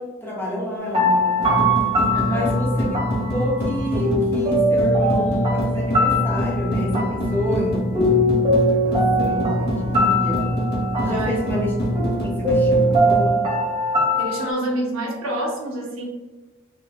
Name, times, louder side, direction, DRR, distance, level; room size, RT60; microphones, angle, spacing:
voice 1, 0.0-1.7 2.3-3.0 3.3-8.2 8.7-10.5 11.0-11.7 12.2-13.5, left 1 dB, 10° left, -5 dB, 0.9 m, -29 dB
sound 1, 0.8-14.5, equal, 25° right, 0.8 m, -22 dB
sound 2, 1.4-13.3, equal, 50° left, 1.0 m, -24 dB
voice 2, 2.1-2.5 11.0-11.4 14.2-16.0, right 1 dB, 80° right, -3 dB, 1.2 m, -27 dB
3.7 x 2.1 x 3.5 m, 1.2 s
head